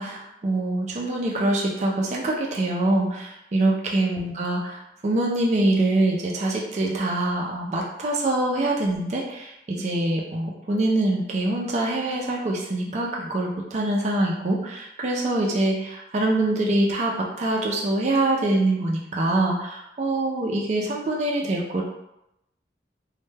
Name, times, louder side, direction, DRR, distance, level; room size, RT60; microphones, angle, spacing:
voice 1, 0.0-21.8, right 2 dB, 40° right, -2 dB, 0.3 m, -24 dB
2.1 x 2.1 x 3.2 m, 0.85 s
head